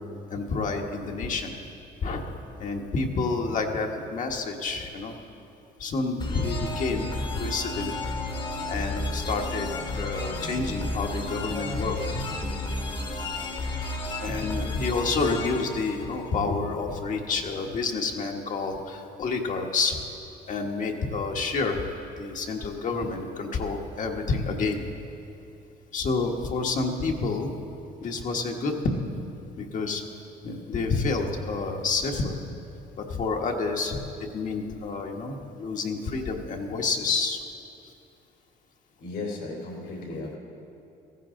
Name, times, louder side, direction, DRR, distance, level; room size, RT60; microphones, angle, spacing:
voice 1, 0.3-1.5 2.0-2.2 2.6-5.1 5.8-8.0 8.7-9.7 9.9-12.3 14.2-20.0 20.5-21.9 22.2-24.8 25.9-27.5 28.0-29.1 29.6-30.0 30.4-32.3 33.0-34.1 34.3-37.4, left 4 dB, 50° left, 2 dB, 1.4 m, -29 dB
sound 1, 6.2-16.8, left 2 dB, 30° left, 1.2 m, -32 dB
voice 2, 39.0-40.4, left 2 dB, 80° left, 0 dB, 3.3 m, -36 dB
15.5 x 15.0 x 3.8 m, 2.7 s
cardioid pair, 110°, 17 cm